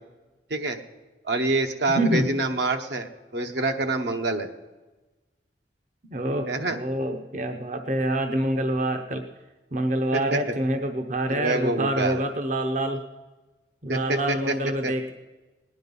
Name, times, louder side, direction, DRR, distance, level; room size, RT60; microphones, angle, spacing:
voice 1, 1.2-4.5 6.5-6.8 10.1-10.4 11.3-12.2 13.9-14.5 14.8-14.9, right 2 dB, 65° right, 5 dB, 1.1 m, -26 dB
voice 2, 1.9-2.3 6.1-9.2 9.7-13.0 13.8-15.1, right 1 dB, 40° right, 6 dB, 0.8 m, -26 dB
18.5 x 10.0 x 5.4 m, 1.2 s
head